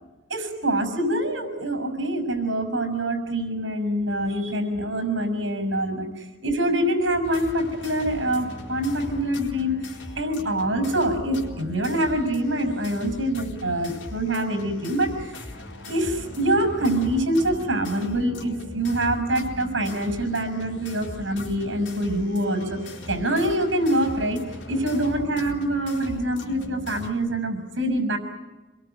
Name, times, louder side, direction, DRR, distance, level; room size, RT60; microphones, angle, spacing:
voice 1, 0.3-9.8 10.2-15.5 15.9-28.2, right 1 dB, 80° right, 10 dB, 6.2 m, -25 dB
sound 1, 7.2-27.1, left 2 dB, 70° left, 4.4 m, -39 dB
27.0 x 22.0 x 9.3 m, 1.2 s
head